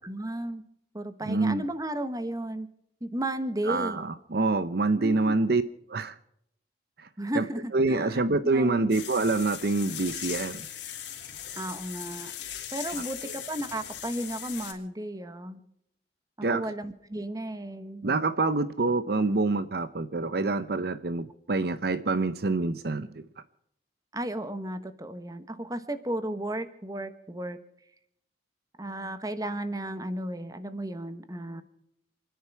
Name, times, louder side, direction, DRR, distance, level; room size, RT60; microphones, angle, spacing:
voice 1, 0.0-0.6 0.9-2.7 3.0-4.1 4.9-5.4 7.2-8.9 11.6-12.3 12.7-15.6 16.4-18.0 24.1-27.6 28.8-31.6, right 1 dB, 20° right, 11 dB, 1.1 m, -34 dB
voice 2, 1.2-1.6 3.6-5.6 5.9-6.2 7.0-7.1 7.3-7.5 7.7-10.7 12.9-13.0 16.4-16.7 18.0-23.2, right 3 dB, 55° right, 13 dB, 0.7 m, -26 dB
sound 1, 8.9-14.7, left 10 dB, 75° left, 3.1 m, -39 dB
29.0 x 10.5 x 4.7 m, 0.74 s
head